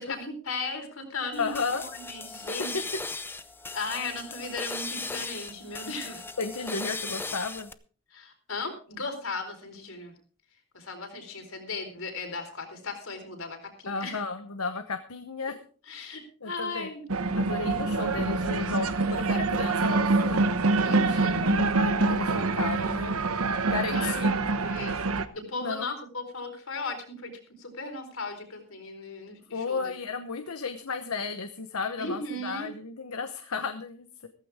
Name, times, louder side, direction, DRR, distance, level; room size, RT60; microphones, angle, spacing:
voice 1, 0.0-2.8 3.7-6.2 8.1-10.1 10.7-14.2 15.9-17.0 20.8-21.5 23.9-27.3 27.6-29.8 32.0-32.7, left 3 dB, 65° left, 5 dB, 4.2 m, -37 dB
sound 1, 1.3-7.7, left 3 dB, 10° left, 0.6 m, -37 dB
voice 2, 1.4-1.8 2.7-3.0 3.9-4.0 6.4-7.7 13.9-15.6 16.4-16.9 17.4-20.4 20.9-23.2 23.7-24.3 25.6-25.9 29.5-34.3, left 4 dB, 85° left, 8 dB, 1.1 m, -33 dB
sound 2, 17.1-25.3, right 3 dB, 80° right, 1.0 m, -25 dB
15.5 x 14.5 x 3.6 m, 0.41 s
head